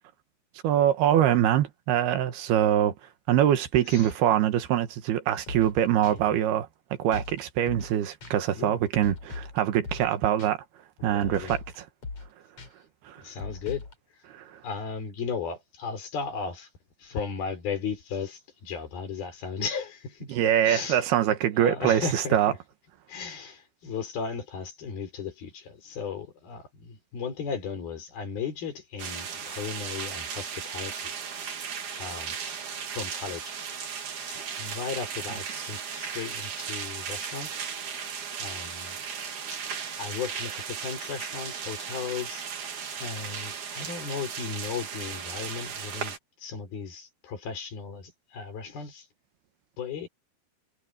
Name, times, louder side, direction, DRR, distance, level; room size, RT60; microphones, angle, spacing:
voice 1, 0.6-3.0 3.3-6.7 7.0-10.6 11.0-11.9 13.1-13.2 14.3-14.6 20.3-22.5, right 11 dB, 80° right, 3.4 m, -24 dB
sound 1, 5.5-5.7 6.0-6.1 7.1-7.4 7.7-7.9 8.2-8.3 9.0-9.6 9.8-10.1 10.4-10.5 11.2-11.7 12.0-12.3 12.6-12.7 13.4-13.9, left 4 dB, 40° left, 4.6 m, -38 dB
voice 2, 6.1-6.4 8.5-8.8 11.1-11.6 13.2-13.9 14.6-16.7 17.0-20.4 20.6-21.1 21.6-22.6 23.1-31.1 31.9-32.5 32.9-33.5 34.3-37.7 38.4-39.0 39.5-39.6 40.0-42.4 43.0-49.1 49.8-50.1, left 5 dB, 70° left, 6.5 m, -36 dB
sound 2, 29.0-46.2, right 7 dB, 55° right, 3.8 m, -36 dB
omnidirectional pair, 4.4 m